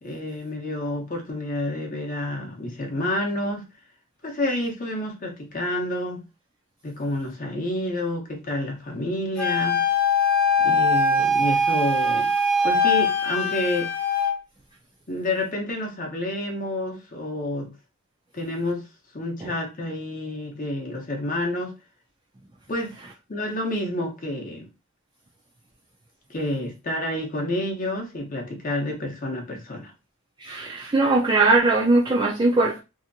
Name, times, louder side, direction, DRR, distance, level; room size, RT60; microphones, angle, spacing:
voice 1, 0.0-3.7 4.2-6.2 6.8-9.9 10.6-12.3 12.6-13.9 15.1-17.8 18.3-18.9 19.1-21.7 22.7-22.9 23.3-24.7 26.3-29.9, left 1 dB, 35° left, 0.7 m, -29 dB
Wind instrument woodwind instrument, 9.4-14.4, left 2 dB, 5° left, 0.8 m, -21 dB
voice 2, 30.4-32.8, right 3 dB, 20° right, 0.4 m, -20 dB
2.7 x 2.5 x 2.6 m
head